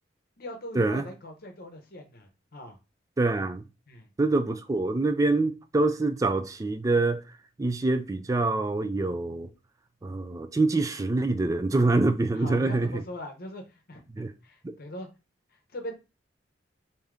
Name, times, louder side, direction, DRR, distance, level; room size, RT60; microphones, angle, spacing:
voice 1, 0.4-2.8 3.9-4.1 12.3-15.1 15.7-15.9, left 1 dB, 55° left, 0.8 m, -41 dB
voice 2, 3.2-3.6 4.2-7.2 7.6-9.5 10.0-12.9 14.1-14.3 14.6-14.7, right 2 dB, 20° right, 0.3 m, -25 dB
3.5 x 2.7 x 3.5 m
head